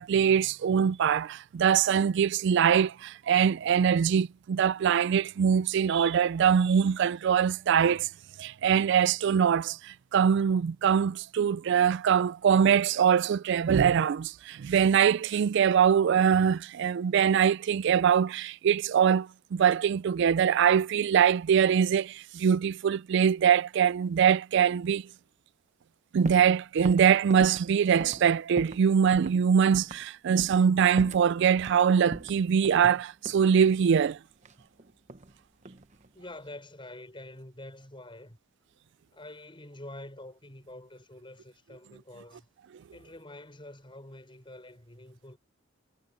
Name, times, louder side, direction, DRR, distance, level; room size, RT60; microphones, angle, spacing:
voice 1, 0.0-8.1 8.4-25.1 26.1-34.2, right 7 dB, 60° right, 0.3 m, -23 dB
sound 1, 26.2-26.5 26.8-28.9 29.1-29.4 29.7-30.1 30.4-30.7 31.0-31.8 32.1-33.5 34.4-35.3 35.6-36.1, right 2 dB, 35° right, 1.0 m, -40 dB
voice 2, 36.1-38.4 39.1-42.5 42.9-45.4, left 1 dB, 25° left, 5.8 m, -46 dB
head